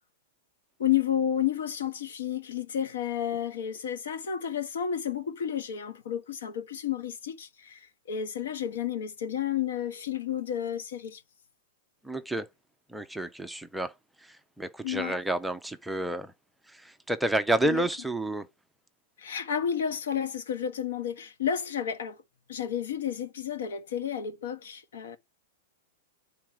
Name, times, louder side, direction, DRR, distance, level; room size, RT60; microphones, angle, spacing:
voice 1, 0.8-11.2 14.8-15.2 17.6-17.8 19.2-22.2 22.5-25.2, left 9 dB, 90° left, 1.3 m, -31 dB
voice 2, 12.0-12.4 12.9-13.9 14.6-16.3 16.8-18.5, right 1 dB, ahead, 0.4 m, -29 dB
9.2 x 3.7 x 4.6 m
supercardioid pair, 175°, 0 cm